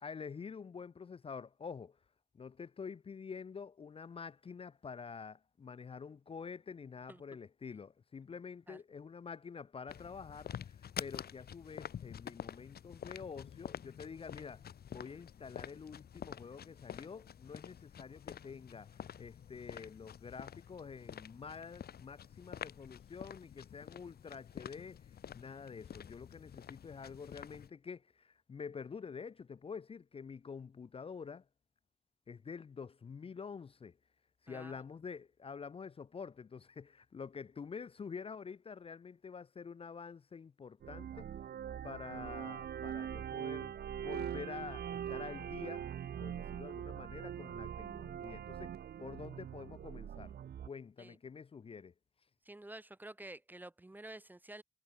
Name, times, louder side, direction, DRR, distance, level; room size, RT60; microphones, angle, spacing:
voice 1, 0.0-2.0 2.3-31.5 32.3-34.0 34.4-41.3 41.8-45.9 46.2-48.7 49.0-50.4 50.6-51.9, left 5 dB, 35° left, 0.6 m, -48 dB
sound 1, 9.9-27.7, left 8 dB, 75° left, 1.6 m, -48 dB
voice 2, 34.5-34.8 51.0-51.2 52.4-54.6, right 1 dB, 10° right, 1.0 m, -50 dB
sound 2, 40.8-50.7, right 9 dB, 85° right, 1.1 m, -42 dB
wide cardioid pair, 175°, 16 cm